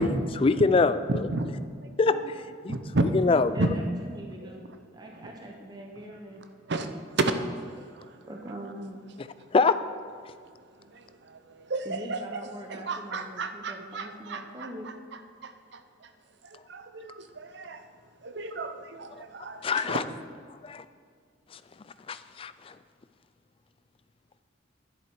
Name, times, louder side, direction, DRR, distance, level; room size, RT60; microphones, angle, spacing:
voice 1, 0.4-1.0 2.0-2.7 3.1-3.6 9.5-9.8 19.6-20.0 20.6-20.8 21.5-21.6 22.1-22.7, left 4 dB, 30° left, 13 dB, 0.3 m, -24 dB
voice 2, 1.1-1.5 2.1-2.3 2.7-3.7 4.4-5.3 6.0-6.2 6.7-6.9 7.2-8.3 10.3-12.4 12.7-16.1 16.4-17.9 18.2-20.0, right 2 dB, 60° right, 8 dB, 0.7 m, -33 dB
voice 3, 3.5-3.8 4.1-4.7 4.9-6.4 6.7-6.9 8.3-9.0 11.8-14.9, right 1 dB, 20° right, 1 dB, 0.7 m, -42 dB
10.5 x 7.7 x 4.7 m, 2.1 s
head